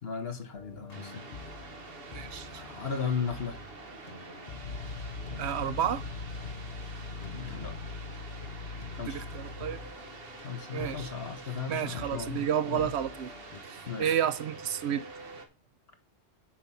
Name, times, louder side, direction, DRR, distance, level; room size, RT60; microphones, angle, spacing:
voice 1, 0.0-1.3 2.5-3.6 7.2-7.7 8.9-9.2 10.4-12.9 13.9-14.2, left 6 dB, 70° left, 1.5 m, -36 dB
sound 1, 0.5-13.6, left 5 dB, 45° left, 0.7 m, -48 dB
sound 2, 0.9-15.5, right 3 dB, 60° right, 1.4 m, -47 dB
voice 2, 2.1-2.6 5.4-6.0 9.1-9.8 10.7-11.1 11.7-13.3 13.7-15.1, right 9 dB, 85° right, 0.9 m, -31 dB
sound 3, 4.6-10.0, left 4 dB, 90° left, 1.1 m, -41 dB
7.8 x 4.7 x 5.7 m
omnidirectional pair, 1.1 m